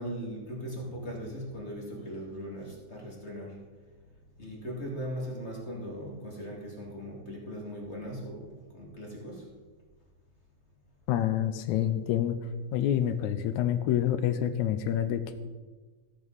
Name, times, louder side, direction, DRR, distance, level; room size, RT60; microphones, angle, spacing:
voice 1, 0.0-3.5 4.4-9.4, equal, 25° left, -2 dB, 2.0 m, -39 dB
voice 2, 11.1-12.4 12.7-15.3, left 11 dB, 80° left, 10 dB, 2.0 m, -27 dB
14.0 x 9.1 x 4.0 m, 1.3 s
omnidirectional pair, 3.5 m